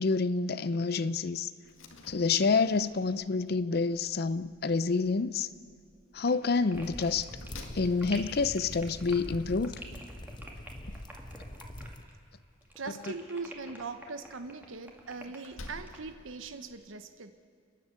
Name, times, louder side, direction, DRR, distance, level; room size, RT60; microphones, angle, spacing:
voice 1, 0.0-1.5 2.1-5.5 6.1-7.3 7.7-9.7, left 4 dB, 50° left, 0.5 m, -28 dB
Slam, 1.6-16.7, left 2 dB, 85° left, 2.0 m, -54 dB
sound 1, 6.2-12.3 12.6-16.0, right 1 dB, 10° right, 2.3 m, -48 dB
sound 2, 6.7-12.0, left 1 dB, 20° left, 1.0 m, -44 dB
voice 2, 12.8-17.4, right 4 dB, 80° right, 1.1 m, -40 dB
29.5 x 11.0 x 8.1 m
head